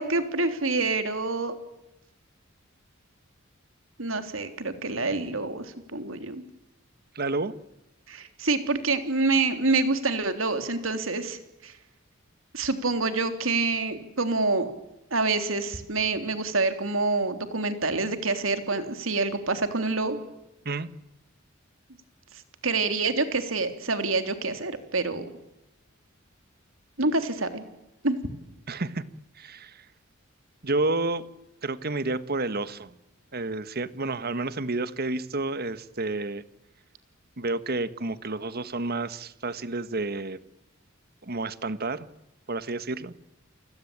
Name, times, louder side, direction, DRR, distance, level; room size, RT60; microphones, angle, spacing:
voice 1, 0.0-1.5 4.0-6.4 8.1-11.7 12.5-14.7 15.1-20.2 22.6-25.2 27.0-27.6 28.0-28.2, right 3 dB, 70° right, 8 dB, 3.5 m, -27 dB
voice 2, 7.1-7.5 20.6-20.9 28.7-29.0 29.4-29.8 30.6-31.3 31.6-32.9 33.3-36.4 37.4-40.4 41.2-42.1 42.5-43.1, right 2 dB, 50° right, 14 dB, 1.4 m, -30 dB
29.5 x 20.5 x 8.8 m, 0.93 s
head